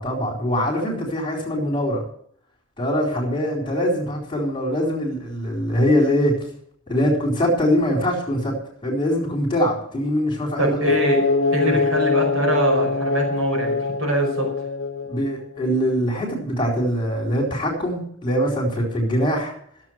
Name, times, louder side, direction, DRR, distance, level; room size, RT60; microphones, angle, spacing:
voice 1, 0.0-2.0 2.8-6.4 6.9-8.6 8.8-10.8 15.1-19.5, equal, 25° left, -4 dB, 4.1 m, -22 dB
voice 2, 10.6-11.2 11.5-14.5, right 1 dB, 70° right, 1 dB, 5.3 m, -23 dB
sound 1, 10.9-15.6, left 4 dB, 60° left, 1.0 m, -23 dB
15.5 x 7.5 x 7.9 m, 0.65 s
head